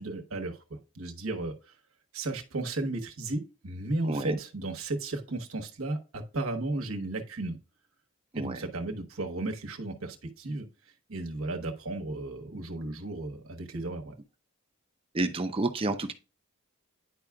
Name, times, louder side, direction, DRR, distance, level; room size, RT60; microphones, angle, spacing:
voice 1, 0.0-1.6 2.1-7.6 8.3-10.7 11.1-14.1, right 2 dB, 90° right, 1.1 m, -34 dB
voice 2, 4.0-4.4 8.3-8.7 15.1-16.1, right 2 dB, 25° right, 0.6 m, -30 dB
10.0 x 4.7 x 2.3 m
head